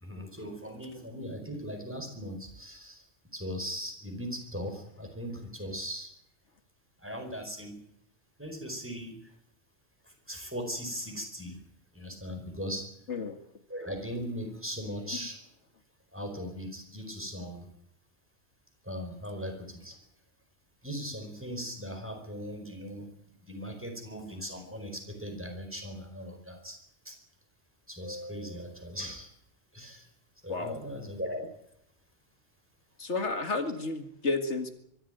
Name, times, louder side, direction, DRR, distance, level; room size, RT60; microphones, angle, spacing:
voice 1, 0.0-3.0 3.3-6.1 7.0-7.8 8.4-9.2 10.3-11.6 11.9-12.9 13.7-15.4 16.1-17.7 18.9-20.0 20.8-23.1 23.4-26.8 27.0-27.1 27.9-29.3 29.7-30.1 30.4-31.4, equal, 10° right, 4 dB, 4.8 m, -39 dB
voice 2, 33.0-34.7, left 3 dB, 70° left, 8 dB, 2.3 m, -31 dB
23.5 x 13.5 x 9.2 m, 0.74 s
omnidirectional pair, 1.2 m